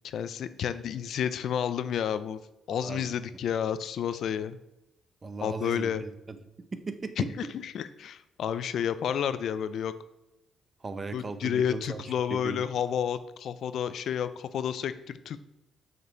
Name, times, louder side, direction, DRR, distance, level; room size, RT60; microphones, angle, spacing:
voice 1, 0.0-2.4 2.7-4.6 5.4-6.0 7.2-7.3 7.7-9.9 11.1-15.4, left 8 dB, 70° left, 13 dB, 0.5 m, -30 dB
voice 2, 2.7-3.1 5.2-7.5 10.8-12.6, right 3 dB, 30° right, 11 dB, 0.8 m, -38 dB
6.6 x 5.2 x 7.0 m, 0.93 s
cardioid pair, 90°, 0 cm